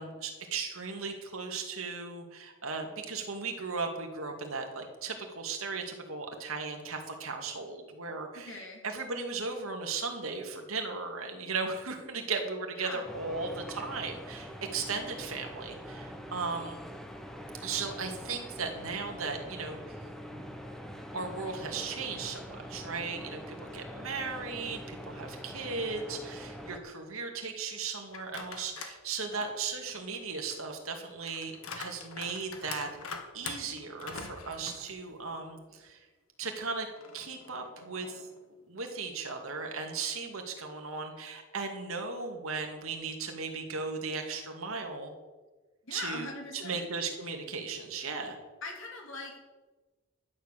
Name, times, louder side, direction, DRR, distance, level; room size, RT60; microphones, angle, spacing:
voice 1, 0.0-16.8 17.6-20.0 20.3-20.4 21.1-32.9 33.3-36.0 36.4-36.9 37.1-38.3 38.7-45.1 45.9-48.4, right 4 dB, 80° right, 3 dB, 2.3 m, -37 dB
voice 2, 8.3-8.8 12.8-13.1 29.3-29.5 45.8-46.8 48.6-49.4, left 2 dB, 65° left, 1 dB, 3.2 m, -41 dB
sound 1, 13.0-26.8, equal, ahead, 1.1 m, -44 dB
sound 2, 28.1-29.0 29.4-35.5 35.9-36.0 37.0-38.4, left 5 dB, 85° left, 1.6 m, -45 dB
12.0 x 9.6 x 6.7 m, 1.2 s
head